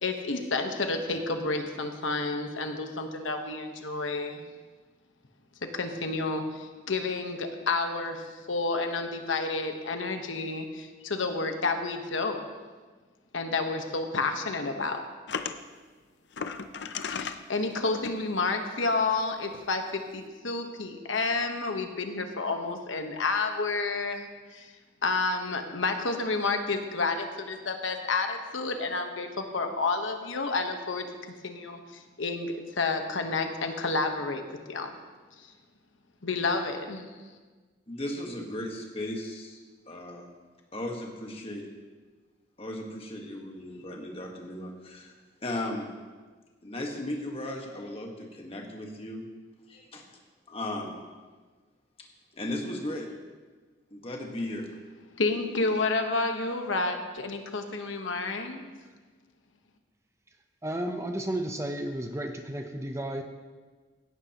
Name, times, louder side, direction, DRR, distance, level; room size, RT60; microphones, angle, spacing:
voice 1, 0.0-4.4 5.7-12.4 13.3-15.0 17.1-24.7 25.0-31.0 31.4-31.8 32.2-34.9 36.2-37.1 55.2-58.6, left 3 dB, 85° left, 5 dB, 1.2 m, -30 dB
sound 1, 15.3-15.6 16.3-17.4 17.8-18.1 19.2-19.3 19.5-19.7, left 6 dB, 65° left, 0.5 m, -34 dB
voice 2, 37.9-39.6 39.9-40.3 40.7-41.6 42.6-45.1 45.4-45.9 46.6-49.2 49.7-50.1 50.5-51.0 52.0-52.1 52.3-53.1 53.9-54.7, left 1 dB, 30° left, 1 dB, 1.4 m, -36 dB
voice 3, 60.6-63.2, right 1 dB, 15° right, 5 dB, 0.6 m, -33 dB
16.5 x 11.5 x 3.0 m, 1.4 s
head